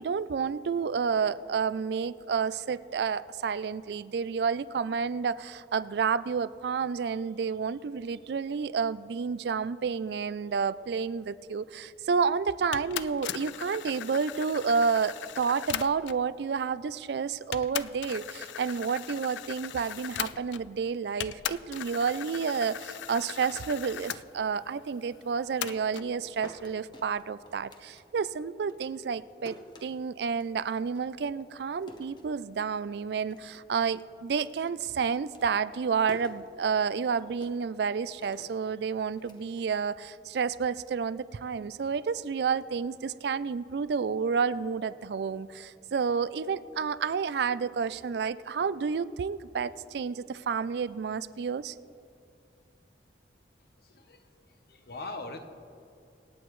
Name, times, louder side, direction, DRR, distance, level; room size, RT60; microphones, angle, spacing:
voice 1, 0.0-51.8, right 6 dB, 65° right, 17 dB, 0.4 m, -30 dB
sound 1, 12.7-16.3 17.0-17.1 17.5-20.8 21.2-24.2 25.6-26.1, left 10 dB, 90° left, 0.4 m, -38 dB
sound 2, 25.5-28.4 28.7-32.8 33.1-33.8 34.0-40.3, left 1 dB, 25° left, 1.0 m, -52 dB
voice 2, 53.8-54.2 54.7-55.4, left 2 dB, 55° left, 6 dB, 0.9 m, -40 dB
26.0 x 8.8 x 3.1 m, 2.6 s
head